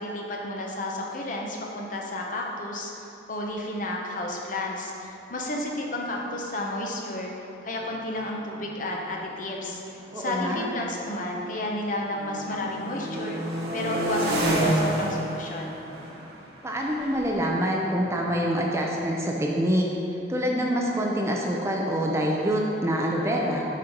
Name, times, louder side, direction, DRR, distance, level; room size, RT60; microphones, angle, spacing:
voice 1, 0.0-7.3 7.6-13.4 13.7-15.8, left 1 dB, 45° left, 0 dB, 0.8 m, -32 dB
sound 1, 6.3-6.4 6.7-7.0 7.8-11.7 12.0-18.7, right 1 dB, 55° right, 1.1 m, -31 dB
voice 2, 10.1-10.7 16.6-19.9 20.3-23.7, equal, 15° right, -1 dB, 0.5 m, -26 dB
7.4 x 4.4 x 5.2 m, 2.9 s
head